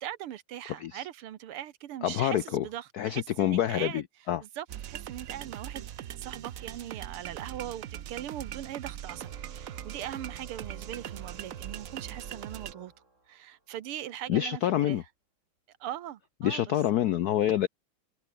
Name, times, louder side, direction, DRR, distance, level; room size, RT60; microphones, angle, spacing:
voice 1, 0.0-4.0 4.4-5.9 6.2-12.9 13.3-15.0 15.8-16.8, right 12 dB, 85° right, 2.0 m, -40 dB
voice 2, 2.0-2.7 3.0-4.4 14.3-15.0 16.4-17.7, left 11 dB, 80° left, 0.8 m, -27 dB
sound 1, 4.7-12.7, right 11 dB, 65° right, 0.8 m, -41 dB
Organ, 9.1-13.6, right 2 dB, 35° right, 5.3 m, -53 dB
omnidirectional pair, 2.4 m